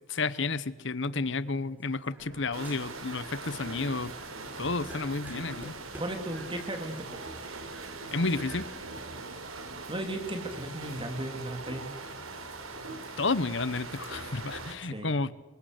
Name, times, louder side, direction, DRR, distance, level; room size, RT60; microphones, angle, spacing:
voice 1, 0.1-4.1 4.6-5.7 8.1-8.7 13.2-15.3, left 3 dB, 60° left, 17 dB, 1.0 m, -31 dB
sound 1, 1.0-2.4 2.6-3.3 3.6-6.3, equal, 10° right, 4.4 m, -51 dB
sound 2, 2.2-10.2, right 3 dB, 55° right, 2.4 m, -49 dB
sound 3, 2.5-14.8, right 3 dB, 85° right, 4.6 m, -42 dB
voice 2, 6.0-7.2 9.9-11.9 14.8-15.2, right 1 dB, 25° right, 5 dB, 3.1 m, -36 dB
27.5 x 24.0 x 8.0 m, 1.1 s
head